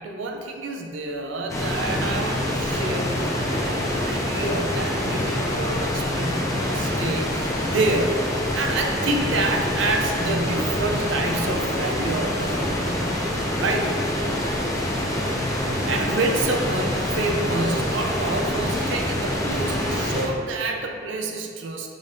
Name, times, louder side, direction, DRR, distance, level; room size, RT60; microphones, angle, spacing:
voice 1, 0.0-12.9 13.6-14.0 15.8-21.9, right 2 dB, 75° right, 3 dB, 0.5 m, -28 dB
sound 1, 1.5-20.3, left 1 dB, 15° left, 0.6 m, -25 dB
5.4 x 2.7 x 3.4 m, 2.2 s
head